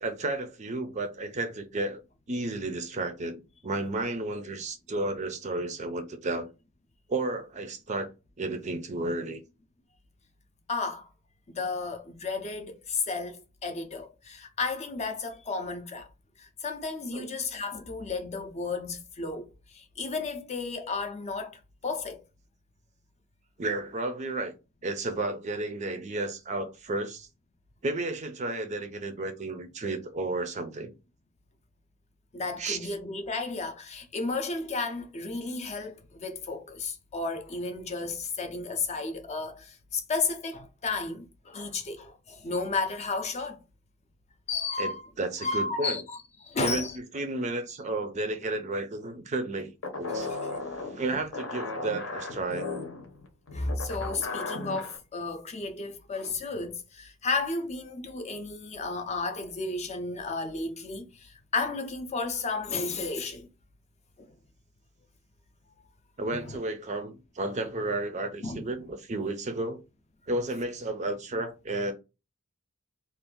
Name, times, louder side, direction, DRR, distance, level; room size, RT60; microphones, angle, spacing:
voice 1, 0.0-2.0 2.3-6.5 7.1-8.1 8.4-9.4 17.1-17.3 23.6-24.5 24.8-27.3 27.8-30.9 32.6-32.9 44.8-44.9 45.2-46.0 46.6-46.8 47.1-49.7 50.0-50.4 50.8-52.7 66.2-69.8 70.3-71.9, right 2 dB, 30° right, 0.4 m, -32 dB
voice 2, 10.7-11.1 11.5-16.1 16.4-22.2 32.3-43.6 44.5-45.0 45.4-47.0 50.1-50.2 53.5-63.5 64.2-64.3 66.3-66.5 68.4-68.8, left 3 dB, 30° left, 0.5 m, -33 dB
sound 1, 49.8-55.0, left 3 dB, 60° left, 0.8 m, -36 dB
2.6 x 2.4 x 3.6 m
head